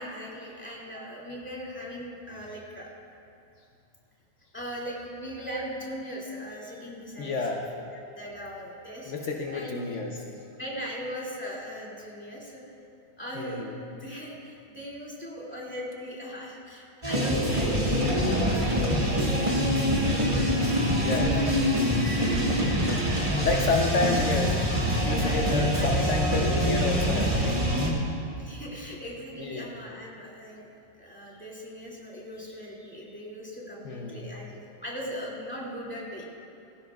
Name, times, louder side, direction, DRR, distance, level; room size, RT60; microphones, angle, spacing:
voice 1, 0.0-2.9 4.5-7.6 7.9-10.0 10.6-12.6 13.2-19.7 20.0-21.7 22.1-24.0 25.1-25.4 25.8-26.5 28.3-30.7 31.0-36.2, equal, 5° left, -5 dB, 2.2 m, -39 dB
voice 2, 7.2-7.6 9.1-10.2 13.3-13.8 18.3-18.6 20.9-21.5 23.4-24.6 24.9-27.6 29.4-29.7 33.8-34.2, left 3 dB, 75° left, 0 dB, 0.6 m, -30 dB
sound 1, 17.0-27.9, equal, 20° right, 1.2 m, -25 dB
17.5 x 15.5 x 2.4 m, 2.7 s
omnidirectional pair, 2.4 m